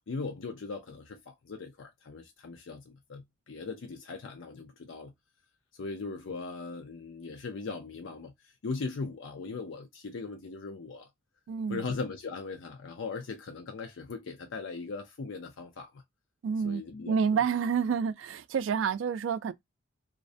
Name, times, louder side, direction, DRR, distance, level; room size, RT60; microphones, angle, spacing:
voice 1, 0.1-5.1 5.8-11.1 11.7-16.0 16.6-17.2, left 4 dB, 75° left, 0.5 m, -39 dB
voice 2, 11.5-11.8 16.4-19.5, right 6 dB, 75° right, 0.3 m, -29 dB
2.4 x 2.1 x 2.5 m
head